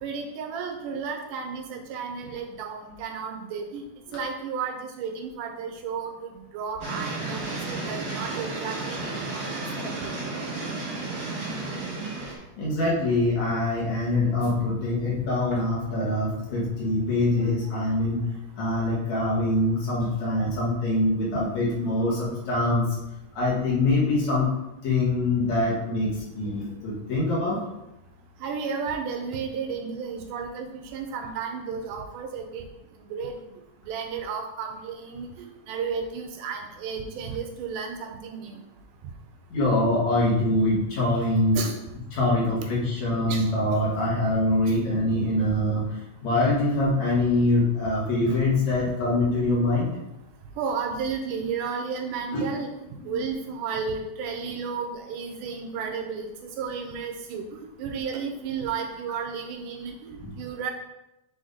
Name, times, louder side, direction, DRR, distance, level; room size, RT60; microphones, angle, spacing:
voice 1, 0.0-3.8 4.1-9.4 9.8-10.1 20.5-20.6 28.4-32.7 33.1-33.4 33.8-38.6 41.5-41.8 43.3-43.4 50.6-52.7 53.0-56.3 56.6-60.7, right 5 dB, 75° right, 3 dB, 2.2 m, -33 dB
sound 1, 6.8-12.4, right 3 dB, 50° right, 1.6 m, -32 dB
voice 2, 12.6-18.3 18.6-22.8 23.4-24.5 24.8-26.1 26.3-27.6 39.5-41.6 42.1-45.8 46.2-49.9 52.3-52.5 60.2-60.3, left 2 dB, 55° left, -6 dB, 2.9 m, -24 dB
7.8 x 3.6 x 4.0 m, 0.90 s
omnidirectional pair, 4.0 m